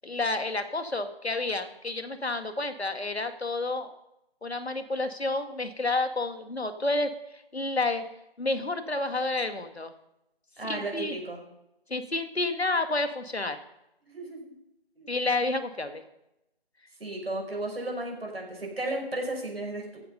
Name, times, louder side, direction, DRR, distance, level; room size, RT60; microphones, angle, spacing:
voice 1, 0.0-3.9 4.4-7.1 7.5-8.0 8.4-9.9 10.7-11.2 11.9-13.6 15.1-16.0, left 2 dB, 85° left, 8 dB, 2.0 m, -30 dB
voice 2, 10.6-11.4 14.1-14.5 15.0-15.1 17.0-20.0, right 2 dB, 70° right, 1 dB, 5.9 m, -34 dB
15.0 x 9.4 x 5.5 m, 0.87 s
figure-of-eight pair, 165°, 31 cm